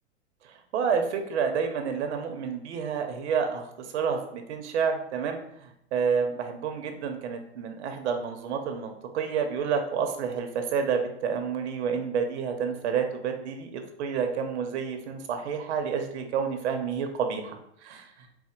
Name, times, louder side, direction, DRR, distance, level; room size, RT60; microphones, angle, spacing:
voice 1, 0.4-18.3, right 6 dB, 80° right, 5 dB, 0.9 m, -29 dB
4.2 x 2.1 x 4.4 m, 0.77 s
supercardioid pair, 145°, 34 cm